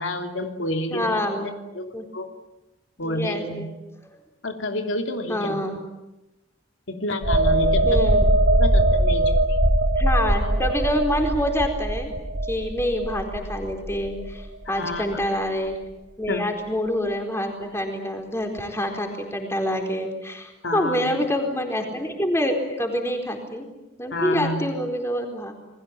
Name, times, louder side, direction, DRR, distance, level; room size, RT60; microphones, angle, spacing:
voice 1, 0.0-1.3 1.7-2.3 3.0-3.7 4.4-5.6 6.9-8.0 8.5-9.6 14.7-15.2 16.3-16.5 20.6-21.3 22.7-22.8 24.1-24.6, left 1 dB, 90° left, 5 dB, 2.9 m, -29 dB
voice 2, 0.9-1.5 1.9-2.0 3.0-3.7 5.3-5.8 7.9-8.2 10.0-12.1 12.5-15.8 16.2-23.7 24.0-25.5, equal, 15° left, 3 dB, 4.3 m, -26 dB
sound 1, 7.2-14.7 15.0-15.2, right 1 dB, 60° right, 3.1 m, -21 dB
29.0 x 21.0 x 9.0 m, 1.0 s
head